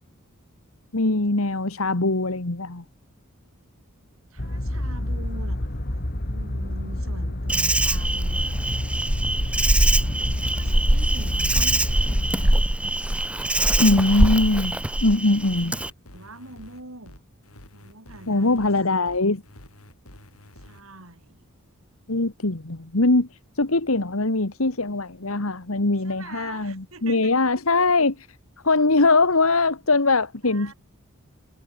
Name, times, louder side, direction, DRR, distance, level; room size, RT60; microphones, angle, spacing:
voice 1, 0.9-2.8 13.8-15.8 18.3-19.4 22.1-28.3 28.6-30.7, left 2 dB, 75° left, 1.8 m, -22 dB
voice 2, 4.3-8.6 9.5-12.6 15.0-15.1 16.1-17.2 17.7-18.7 20.5-21.5 26.0-27.5 30.4-30.7, right 2 dB, 70° right, 6.0 m, -44 dB
sound 1, 4.4-12.6, left 1 dB, 50° left, 2.2 m, -29 dB
Insect, 7.5-15.9, right 1 dB, 5° right, 0.7 m, -23 dB
sound 2, 13.1-20.8, left 1 dB, 90° left, 7.6 m, -48 dB
head